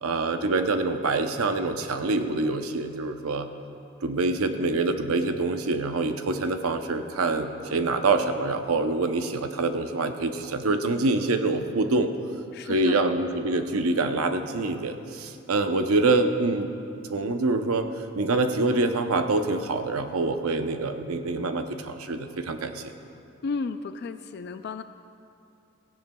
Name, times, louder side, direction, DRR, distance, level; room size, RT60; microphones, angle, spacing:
voice 1, 0.0-3.5 4.0-12.1 12.6-16.7 17.0-22.9, right 3 dB, 90° right, 7 dB, 0.7 m, -25 dB
voice 2, 12.5-13.0 23.4-24.8, left 4 dB, 50° left, 10 dB, 0.3 m, -33 dB
17.0 x 15.0 x 2.3 m, 2.5 s
head